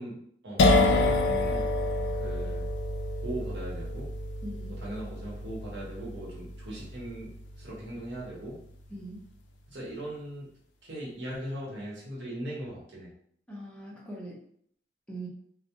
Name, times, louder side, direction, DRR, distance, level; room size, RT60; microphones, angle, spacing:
voice 1, 0.0-1.7 2.2-2.7 3.2-4.1 4.7-7.3 7.5-8.6 9.7-10.5 10.8-13.1, right 1 dB, 75° right, -5 dB, 0.9 m, -39 dB
sound 1, 0.6-8.2, left 2 dB, 80° left, 0.3 m, -28 dB
voice 2, 4.4-4.8 8.9-9.2 13.5-14.4 15.1-15.3, right 1 dB, 5° left, -5 dB, 0.5 m, -41 dB
2.2 x 2.0 x 2.7 m, 0.65 s
head